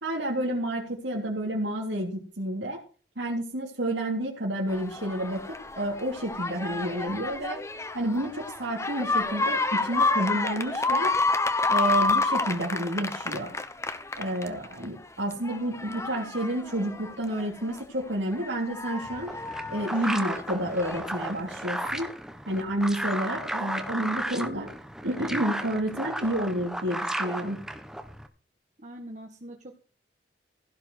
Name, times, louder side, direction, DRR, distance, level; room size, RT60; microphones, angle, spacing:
voice 1, 0.0-2.8 3.2-7.6 7.9-11.1 11.7-13.5 14.2-19.3 19.7-22.1 22.5-24.7 25.0-27.6, right 1 dB, 85° right, -3 dB, 3.1 m, -30 dB
sound 1, 4.7-14.9 15.3-17.8 18.3-21.1 22.0-22.1, left 3 dB, 15° left, 1.0 m, -29 dB
sound 2, 19.0-28.3, right 1 dB, 5° right, 1.4 m, -34 dB
voice 2, 28.8-29.7, right 1 dB, 45° right, 2 dB, 1.6 m, -43 dB
16.0 x 5.6 x 6.5 m, 0.39 s
head